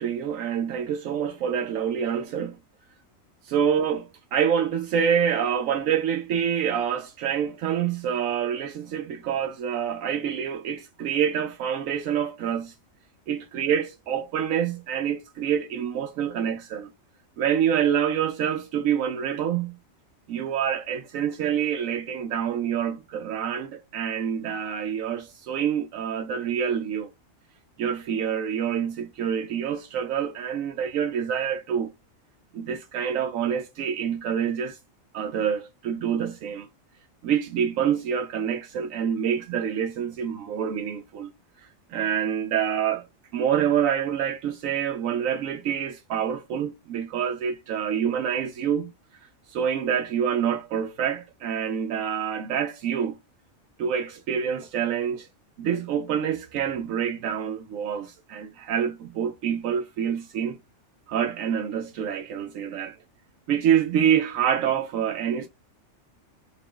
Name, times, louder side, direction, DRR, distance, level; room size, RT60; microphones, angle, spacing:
voice 1, 0.0-2.6 3.4-12.7 13.3-16.9 17.4-19.8 20.3-27.1 27.8-31.9 32.5-34.8 35.1-36.7 37.2-41.3 41.9-43.1 43.3-48.9 49.5-53.2 53.8-55.3 55.6-60.6 61.1-63.0 63.5-65.5, right 8 dB, 85° right, 1.0 m, -26 dB
3.7 x 2.2 x 3.7 m
omnidirectional pair, 1.4 m